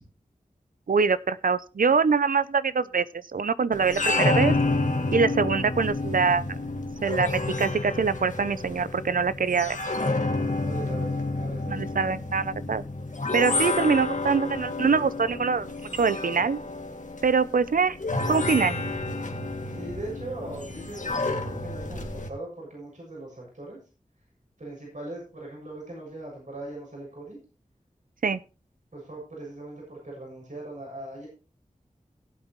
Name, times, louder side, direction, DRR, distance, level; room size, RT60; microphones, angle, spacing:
voice 1, 0.9-4.5 5.1-6.5 7.0-9.8 11.7-12.8 13.3-16.6 17.2-18.0 18.3-18.8 28.2-28.4, right 5 dB, 90° right, 17 dB, 0.6 m, -24 dB
sound 1, 3.7-22.3, left 2 dB, 65° left, 1.8 m, -29 dB
voice 2, 10.6-11.9 19.7-23.8 24.6-27.4 28.9-31.3, right 2 dB, 65° right, -3 dB, 7.0 m, -40 dB
17.5 x 8.2 x 3.1 m, 0.32 s
wide cardioid pair, 45°, 14 cm